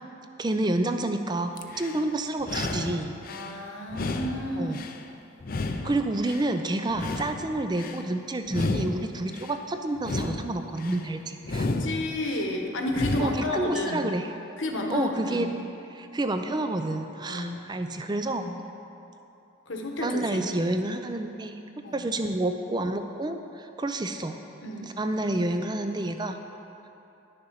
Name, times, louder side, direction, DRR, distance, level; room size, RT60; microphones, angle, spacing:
voice 1, 0.4-3.2 4.6-4.8 5.8-11.7 13.2-14.3 14.9-15.5 15.9-18.5 20.0-21.5 21.9-24.4 24.8-26.4, right 2 dB, 20° right, 7 dB, 0.4 m, -29 dB
sound 1, 1.6-2.0 2.4-3.5 3.9-5.0 5.4-6.5 6.9-8.0 8.5-9.5 10.0-11.0 11.4-12.4 12.9-13.5, left 2 dB, 45° left, 0.5 m, -32 dB
voice 2, 3.3-4.7 5.8-5.9 6.8-6.9 11.6-14.1 14.6-15.5 17.2-17.6 18.4-18.5 19.7-20.5 21.8-22.1 24.6-24.9, left 1 dB, 65° left, 2 dB, 1.1 m, -31 dB
11.0 x 6.7 x 5.6 m, 2.9 s
head